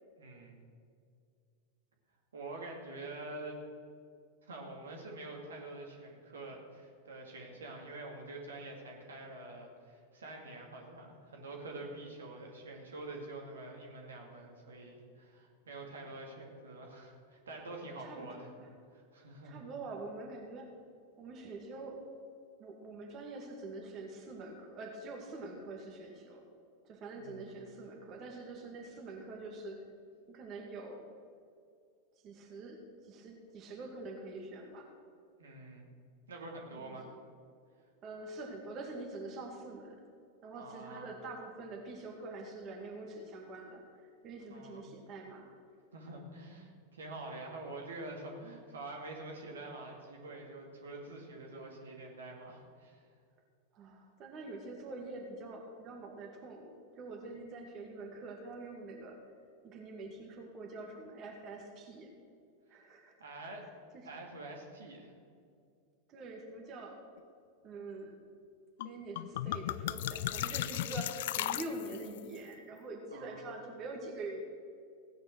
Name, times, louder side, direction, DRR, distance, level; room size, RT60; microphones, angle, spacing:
voice 1, 0.2-0.6 2.3-3.6 4.4-18.5 18.9-19.6 27.1-27.5 35.4-35.9 36.3-37.1 40.6-41.1 44.5-44.8 45.9-53.0 63.2-63.7 64.0-65.1 73.1-73.5, right 2 dB, 65° right, 0 dB, 2.5 m, -46 dB
voice 2, 18.0-18.7 19.4-20.7 21.2-22.0 22.6-26.4 26.8-29.8 30.3-31.0 32.2-34.9 36.8-37.1 38.0-40.0 40.4-43.8 44.2-45.5 53.7-59.2 59.6-62.1 62.7-63.1 66.1-67.0 67.6-68.1 68.8-74.4, right 2 dB, 35° right, 1 dB, 2.1 m, -45 dB
sound 1, 68.8-68.9 69.2-72.2, left 13 dB, 55° left, 0.4 m, -36 dB
16.5 x 9.4 x 6.2 m, 2.3 s
figure-of-eight pair, 90°, 0 cm